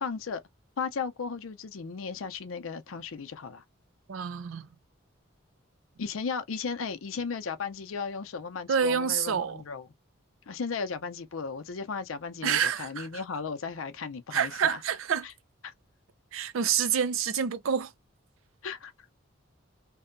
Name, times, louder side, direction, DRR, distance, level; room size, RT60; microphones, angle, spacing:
voice 1, 0.0-0.4 0.8-3.6 6.0-9.8 10.5-14.8 15.2-15.3 15.6-15.7 18.6-18.9, left 5 dB, 85° left, 0.5 m, -35 dB
voice 2, 4.1-4.7 8.7-9.6 12.4-13.2 14.3-15.3 16.3-17.9, right 7 dB, 80° right, 0.4 m, -28 dB
2.7 x 2.1 x 2.5 m
head